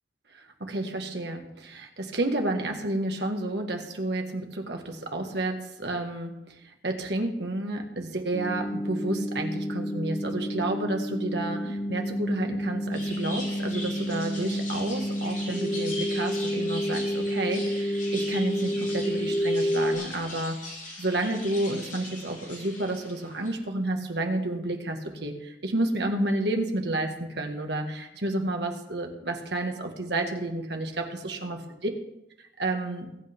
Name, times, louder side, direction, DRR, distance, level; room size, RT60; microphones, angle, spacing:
voice 1, 0.3-31.6 32.6-33.1, right 2 dB, 65° right, 3 dB, 1.7 m, -30 dB
sound 1, 8.3-20.0, equal, 10° left, 2.5 m, -29 dB
sound 2, 12.9-23.5, left 2 dB, 40° left, 4.0 m, -41 dB
21.5 x 8.5 x 3.6 m, 0.87 s
head